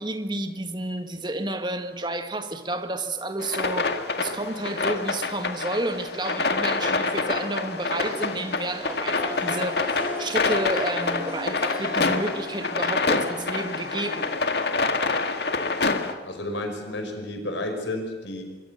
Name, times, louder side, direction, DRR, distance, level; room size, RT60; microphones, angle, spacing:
voice 1, 0.0-14.3, right 1 dB, 25° right, 1.7 m, -31 dB
sound 1, 3.4-16.1, left 3 dB, 65° left, 1.9 m, -26 dB
Harp, 8.0-13.8, left 2 dB, 25° left, 7.0 m, -39 dB
voice 2, 16.2-18.4, left 1 dB, 90° left, 5.4 m, -31 dB
25.5 x 22.5 x 7.0 m
head